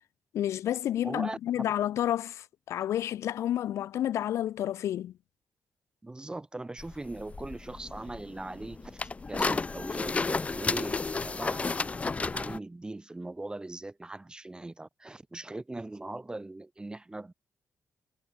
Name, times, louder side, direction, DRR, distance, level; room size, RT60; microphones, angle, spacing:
voice 1, 0.3-5.1, left 11 dB, 85° left, 0.7 m, -30 dB
voice 2, 1.0-1.4 6.0-9.0 9.3-17.3, right 2 dB, 15° right, 0.7 m, -40 dB
sound 1, 6.8-12.6, left 4 dB, 25° left, 0.4 m, -32 dB
cardioid pair, 80°, 5 cm